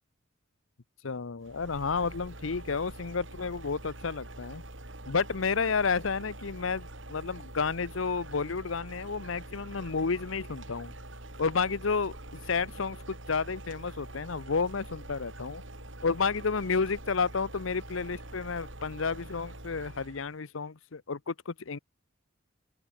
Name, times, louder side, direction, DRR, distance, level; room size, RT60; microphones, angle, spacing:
voice 1, 1.0-4.6 5.1-10.9 11.4-12.1 12.5-15.6 16.0-21.8, left 5 dB, 75° left, 0.8 m, -31 dB
sound 1, 1.4-20.3, right 1 dB, 70° right, 6.0 m, -45 dB
open air
head